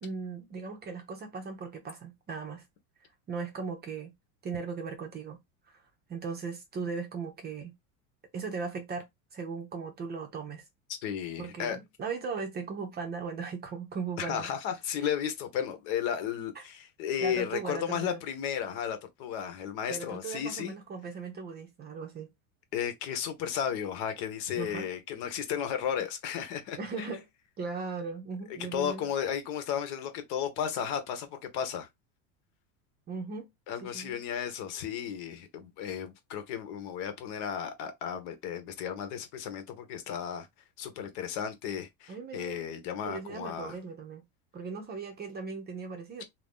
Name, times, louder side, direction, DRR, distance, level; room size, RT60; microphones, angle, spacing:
voice 1, 0.0-2.6 3.3-4.1 4.4-5.4 5.7-5.8 6.1-7.7 8.3-10.6 11.4-14.5 15.0-15.1 16.6-16.7 17.2-18.2 19.9-22.3 24.6-24.9 26.8-27.3 27.6-29.0 33.1-33.5 33.8-34.2 42.1-42.7 43.0-44.2 44.5-46.2, right 5 dB, 25° right, 0.7 m, -38 dB
voice 2, 11.0-11.8 14.2-20.7 22.7-27.1 28.7-31.9 33.7-40.5 40.8-43.7, left 8 dB, 55° left, 1.1 m, -34 dB
2.7 x 2.7 x 3.6 m
supercardioid pair, 140°, 43 cm